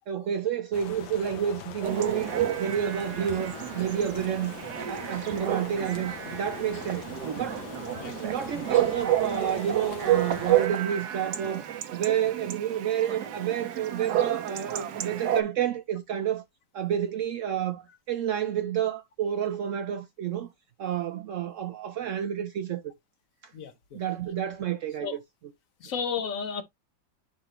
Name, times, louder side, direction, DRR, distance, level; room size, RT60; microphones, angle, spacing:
voice 1, 0.1-2.3 2.6-4.5 4.9-7.1 7.4-7.6 8.2-16.4 16.7-20.5 20.8-22.9 23.9-25.2, right 9 dB, 80° right, 0.7 m, -30 dB
sound 1, 0.7-10.7, left 9 dB, 85° left, 1.8 m, -42 dB
Chatter / Bark / Livestock farm animals working animals, 1.8-15.4, right 11 dB, 65° right, 1.3 m, -30 dB
voice 2, 25.8-26.6, left 6 dB, 55° left, 1.1 m, -32 dB
10.0 x 3.7 x 3.0 m
omnidirectional pair, 2.1 m